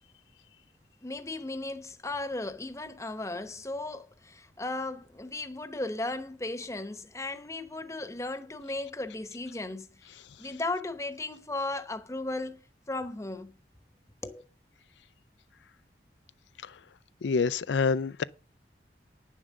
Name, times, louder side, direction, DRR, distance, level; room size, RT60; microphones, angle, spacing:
voice 1, 1.0-12.6 12.9-13.5 14.2-14.4, left 2 dB, 15° left, 0.9 m, -36 dB
voice 2, 17.2-18.2, left 5 dB, 85° left, 0.4 m, -27 dB
9.8 x 7.4 x 6.4 m
head